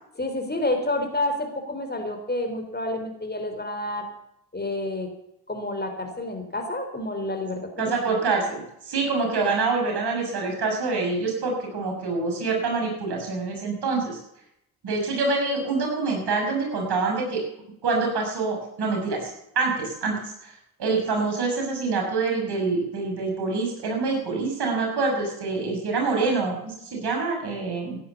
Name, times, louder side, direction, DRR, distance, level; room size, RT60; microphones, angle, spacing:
voice 1, 0.2-4.1 4.5-5.1 5.5-8.2, left 1 dB, 20° left, 5 dB, 3.8 m, -29 dB
voice 2, 7.8-14.2 14.8-17.4 17.8-20.5 20.8-28.0, right 3 dB, 55° right, 1 dB, 6.7 m, -26 dB
16.0 x 10.5 x 7.2 m, 0.80 s
hypercardioid pair, 45°, 48 cm